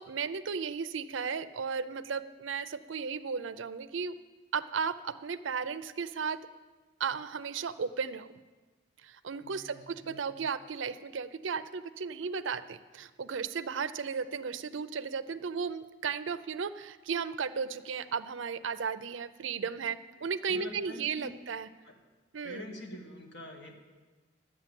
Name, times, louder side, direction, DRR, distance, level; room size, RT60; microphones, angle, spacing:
voice 1, 0.0-4.1 4.5-6.4 7.0-8.3 9.0-21.7 22.3-22.6, right 6 dB, 75° right, 12 dB, 0.5 m, -35 dB
voice 2, 9.4-10.4 19.6-19.7 20.2-21.4 21.8-22.0 22.4-23.7, left 1 dB, 60° left, 1 dB, 1.8 m, -47 dB
11.5 x 8.0 x 7.6 m, 1.3 s
head